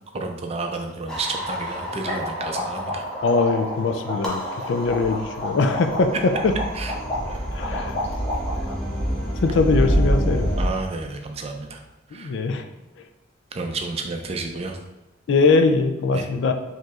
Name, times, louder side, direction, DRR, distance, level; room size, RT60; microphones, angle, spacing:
voice 1, 0.1-3.0 6.7-6.9 7.3-7.5 10.6-11.8 12.1-12.3 13.5-14.8 16.1-16.3, right 3 dB, 30° right, 4 dB, 0.4 m, -31 dB
sound 1, 0.7-0.8 1.1-1.2 1.5-8.7, left 1 dB, 30° left, 1.0 m, -31 dB
sound 2, 1.1-10.7, equal, 5° left, 0.7 m, -28 dB
voice 2, 3.2-4.4 4.7-6.1 6.4-6.5 7.5-7.9 9.4-10.5 12.1-12.6 15.3-16.5, left 4 dB, 65° left, 7 dB, 0.4 m, -21 dB
4.5 x 3.0 x 2.5 m, 1.0 s
head